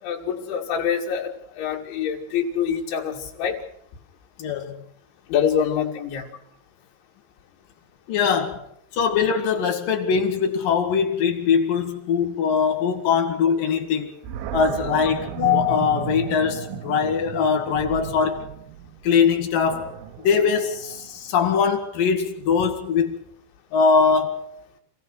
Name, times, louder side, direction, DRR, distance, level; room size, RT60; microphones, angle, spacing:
voice 1, 0.0-3.6 5.3-6.3, left 8 dB, 80° left, 4.7 m, -25 dB
voice 2, 4.4-4.8 8.1-8.6 8.9-14.1 14.5-18.5 19.0-19.9 20.2-23.2 23.7-24.5, left 6 dB, 55° left, 3.1 m, -21 dB
Animal, 14.2-21.4, right 11 dB, 70° right, 2.5 m, -35 dB
26.5 x 16.0 x 6.4 m
omnidirectional pair, 5.4 m